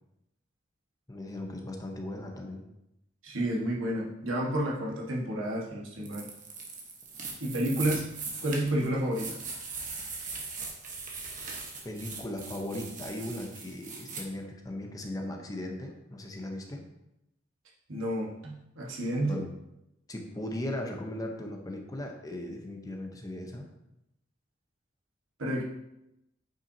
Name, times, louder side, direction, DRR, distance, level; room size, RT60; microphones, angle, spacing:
voice 1, 1.1-2.6 11.8-16.9 19.2-19.5 20.1-23.7, left 1 dB, 20° left, 2 dB, 0.8 m, -38 dB
voice 2, 3.2-6.3 7.4-8.1 8.4-9.4 17.9-19.4 25.4-25.6, right 1 dB, 85° right, -3 dB, 1.5 m, -30 dB
sound 1, 6.0-14.2, right 4 dB, 40° right, 1.2 m, -40 dB
8.8 x 5.6 x 2.8 m, 0.85 s
head